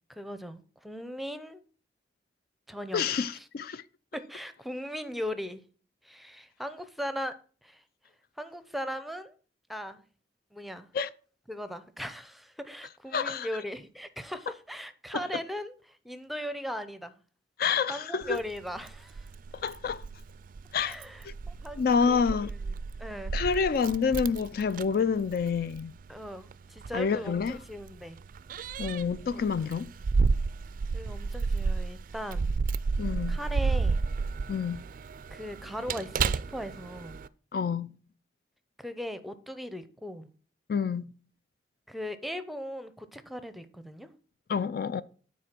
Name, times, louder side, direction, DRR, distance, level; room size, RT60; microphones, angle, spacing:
voice 1, 0.1-1.6 2.7-3.0 3.3-3.4 4.1-5.6 6.0-7.3 7.6-7.8 8.4-9.3 9.7-10.0 10.5-10.9 11.5-17.1 17.9-19.3 19.9-20.0 20.8-22.2 22.5-22.7 23.0-23.4 26.1-28.2 29.3-29.5 30.9-32.5 33.3-34.0 35.3-37.2 38.8-40.3 41.9-44.1, equal, ahead, 0.6 m, -38 dB
voice 2, 2.9-3.8 10.9-11.1 13.1-13.5 17.6-18.4 19.5-20.1 20.7-21.0 21.2-21.3 21.8-22.5 23.3-25.9 26.9-27.6 28.8-29.9 33.0-33.4 34.5-34.8 37.5-37.9 40.7-41.1 44.5-45.0, left 6 dB, 55° left, 0.4 m, -28 dB
Keys jangling, 18.2-37.3, right 4 dB, 50° right, 0.3 m, -32 dB
9.4 x 4.3 x 6.0 m
head